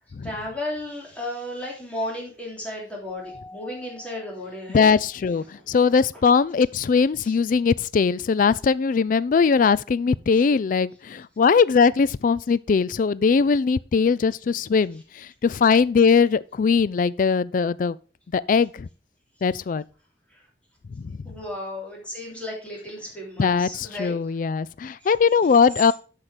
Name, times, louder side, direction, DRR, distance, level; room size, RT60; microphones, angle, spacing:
voice 1, 0.2-4.9 5.5-5.6 7.2-7.3 20.3-20.4 21.2-24.2 25.0-25.1, left 1 dB, 5° left, 3.1 m, -34 dB
Keyboard (musical), 3.0-5.3, left 2 dB, 65° left, 3.2 m, -46 dB
voice 2, 4.7-18.0 18.3-18.9 19.4-19.8 21.0-21.2 23.4-25.9, left 5 dB, 50° left, 0.3 m, -20 dB
8.0 x 5.8 x 4.9 m
head